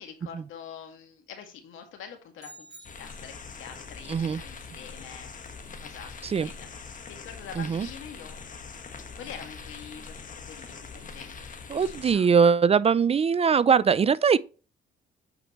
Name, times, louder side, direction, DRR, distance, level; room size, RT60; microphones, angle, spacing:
voice 1, 0.0-5.5 5.8-8.4 8.6-10.7 11.0-12.3, left 7 dB, 85° left, 2.0 m, -46 dB
sound 1, 2.4-3.7, right 2 dB, 65° right, 3.6 m, -51 dB
sound 2, 2.8-12.1, left 5 dB, 40° left, 1.4 m, -43 dB
voice 2, 4.1-4.4 6.2-6.5 7.6-7.9 11.7-14.4, right 6 dB, 30° right, 0.4 m, -21 dB
8.1 x 5.0 x 3.0 m
cardioid pair, 90°, 20 cm